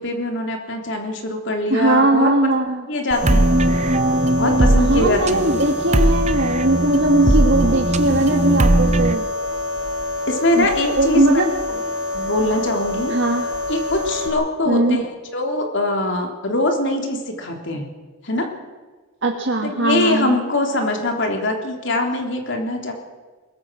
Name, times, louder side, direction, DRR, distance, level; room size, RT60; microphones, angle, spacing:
voice 1, 0.0-2.3 2.9-3.5 4.4-5.4 10.3-11.4 11.7-11.8 12.1-13.1 13.7-17.9 18.2-18.5 19.6-22.9, left 1 dB, 65° left, 3 dB, 3.4 m, -22 dB
voice 2, 1.7-2.9 4.9-9.3 10.5-11.5 13.1-13.5 14.7-15.0 19.2-20.4, right 2 dB, 65° right, 1 dB, 1.8 m, -19 dB
sound 1, 3.1-14.3, left 2 dB, 80° left, 5.9 m, -26 dB
sound 2, 3.2-9.1, right 1 dB, 35° right, 0.8 m, -19 dB
22.5 x 21.5 x 6.3 m, 1.4 s
head